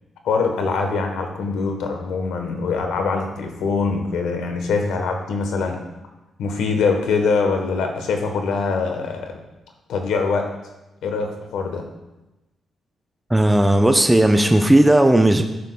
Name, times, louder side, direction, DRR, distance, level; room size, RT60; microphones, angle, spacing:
voice 1, 0.2-5.8 6.4-9.4 9.9-10.5 11.0-11.9, left 4 dB, 85° left, 4 dB, 1.0 m, -23 dB
voice 2, 13.3-15.4, right 1 dB, 10° right, 5 dB, 0.5 m, -15 dB
11.5 x 6.4 x 2.2 m, 1.0 s
cardioid pair, 90°, 0 cm